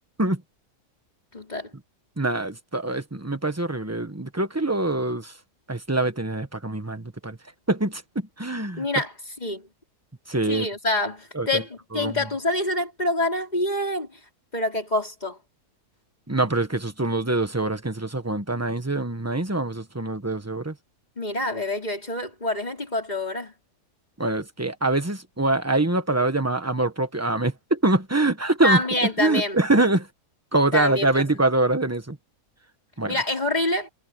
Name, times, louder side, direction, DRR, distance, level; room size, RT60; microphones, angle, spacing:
voice 1, 1.3-1.7 8.8-9.1 9.4-9.7 10.5-14.2 14.5-15.4 21.2-23.5 28.6-29.6 30.7-31.2 33.1-33.9, left 1 dB, 25° left, 4.7 m, -26 dB
voice 2, 2.2-5.3 5.7-7.4 7.7-8.8 10.3-10.7 11.3-11.6 11.9-12.2 16.3-20.7 24.2-28.8 29.2-30.1 30.5-32.2 33.0-33.2, right 2 dB, 10° right, 1.2 m, -24 dB
omnidirectional pair, 1.7 m